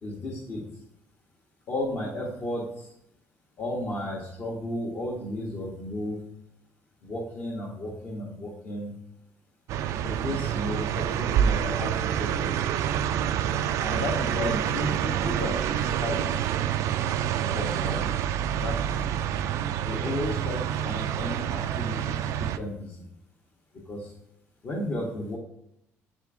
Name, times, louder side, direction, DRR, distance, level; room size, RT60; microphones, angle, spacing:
voice 1, 0.0-0.8 1.7-2.9 3.6-6.3 7.0-8.9 10.0-12.7 13.8-16.4 17.5-18.1 18.5-19.1 19.9-23.1 23.9-24.1 24.6-25.4, left 1 dB, 45° left, -6 dB, 1.6 m, -34 dB
sound 1, 9.7-22.6, right 9 dB, 75° right, 0.3 m, -27 dB
8.4 x 3.6 x 3.6 m, 0.78 s
cardioid pair, 95°, 5 cm